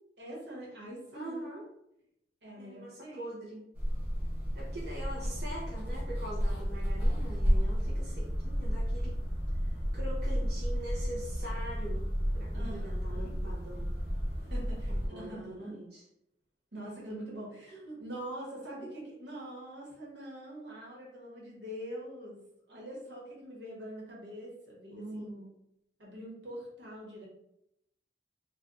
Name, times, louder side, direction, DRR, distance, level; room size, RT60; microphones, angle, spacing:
voice 1, 0.2-1.4 2.4-3.3 12.5-13.3 14.5-15.7 16.7-22.4 22.7-25.3 26.0-27.3, right 1 dB, 85° right, -4 dB, 1.2 m, -44 dB
voice 2, 1.1-1.7 2.6-3.6 4.5-9.2 9.6-12.1 12.3-13.9 14.9-16.1 24.9-25.5, right 1 dB, 60° right, -5 dB, 0.6 m, -43 dB
sound 1, 3.7-15.1, equal, 10° right, 1.0 m, -32 dB
2.6 x 2.2 x 3.5 m, 0.79 s
head